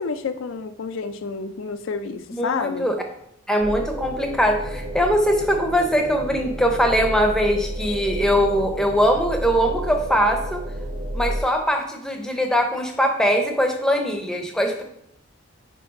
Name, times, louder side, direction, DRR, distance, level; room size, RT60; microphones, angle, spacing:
voice 1, 0.0-2.9, left 5 dB, 70° left, 9 dB, 0.4 m, -29 dB
voice 2, 2.3-3.0 3.5-10.6 11.1-14.8, equal, 5° left, 3 dB, 0.6 m, -21 dB
sound 1, 3.6-11.4, right 1 dB, 55° right, 1.1 m, -31 dB
4.7 x 4.4 x 5.1 m, 0.75 s
head